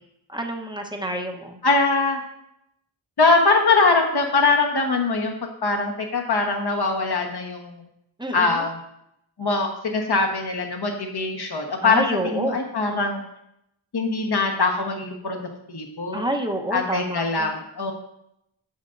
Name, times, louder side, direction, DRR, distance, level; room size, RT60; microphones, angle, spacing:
voice 1, 0.3-1.6 8.2-8.6 11.8-12.6 16.1-17.5, right 1 dB, 10° right, 3 dB, 1.0 m, -28 dB
voice 2, 1.6-2.2 3.2-7.8 8.3-8.8 9.4-12.0 12.3-13.2 13.9-15.4 15.7-16.2 16.7-17.9, left 3 dB, 55° left, 2 dB, 1.3 m, -22 dB
9.4 x 6.5 x 2.7 m, 0.79 s
cardioid pair, 60°, 47 cm